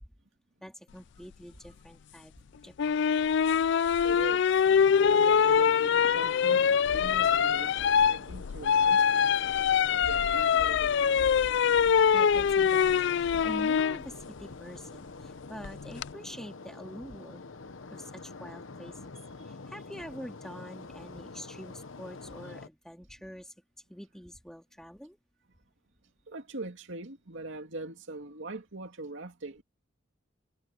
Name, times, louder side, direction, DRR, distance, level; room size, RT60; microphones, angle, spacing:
voice 1, 0.6-2.3 2.6-3.2 4.0-4.1 12.1-17.4 17.9-19.0 19.5-23.5 23.9-25.2, equal, 5° left, 2.2 m, -45 dB
sound 1, 2.8-14.0 15.6-16.1, left 7 dB, 65° left, 0.4 m, -24 dB
voice 2, 4.0-4.6 4.9-9.3 9.9-11.5 19.4-19.5 26.3-29.6, right 2 dB, 75° right, 2.4 m, -42 dB
sound 2, 4.6-22.7, left 3 dB, 90° left, 1.0 m, -46 dB
head